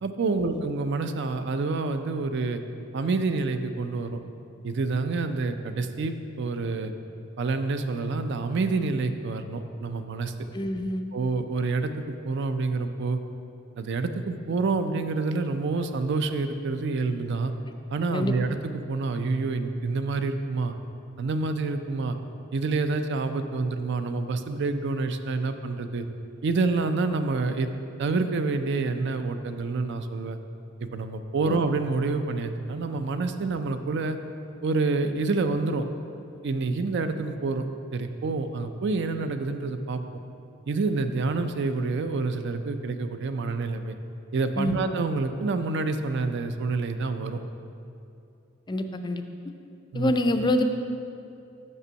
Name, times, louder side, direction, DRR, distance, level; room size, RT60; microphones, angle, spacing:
voice 1, 0.0-2.6 2.9-4.2 4.6-6.9 7.4-10.3 11.1-13.2 13.8-17.5 17.9-20.7 21.2-22.2 22.5-26.1 26.4-27.7 28.0-30.4 30.8-34.2 34.6-35.9 36.4-37.7 37.9-40.0 40.7-44.0 44.3-47.4 49.9-50.1, right 3 dB, 60° right, 8 dB, 0.4 m, -27 dB
voice 2, 10.5-11.1 18.1-18.3 31.5-31.6 44.6-44.8 48.7-49.2 49.9-50.6, left 1 dB, 20° left, 7 dB, 0.4 m, -26 dB
6.1 x 5.4 x 6.2 m, 2.6 s
head